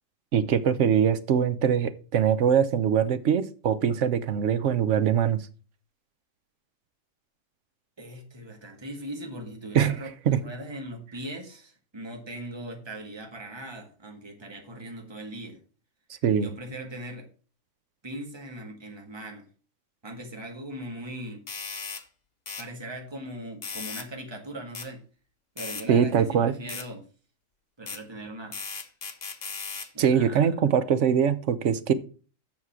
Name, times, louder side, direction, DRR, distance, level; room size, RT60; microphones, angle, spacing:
voice 1, 0.3-5.4 9.7-9.9 10.3-10.4 16.2-16.5 25.9-26.5 30.0-31.9, right 8 dB, 65° right, 13 dB, 1.1 m, -22 dB
voice 2, 8.0-15.6 16.4-17.3 18.0-19.4 20.0-21.4 22.6-25.0 25.5-27.0 27.8-28.6 29.9-30.5, right 1 dB, 20° right, 2 dB, 1.7 m, -39 dB
sound 1, 21.5-22.0 22.5-22.7 23.6-24.1 24.7-24.9 25.6-25.9 26.7-26.9 27.9-28.0 28.5-29.9, left 5 dB, 40° left, 0.7 m, -37 dB
7.5 x 6.3 x 5.8 m, 0.37 s
omnidirectional pair, 1.4 m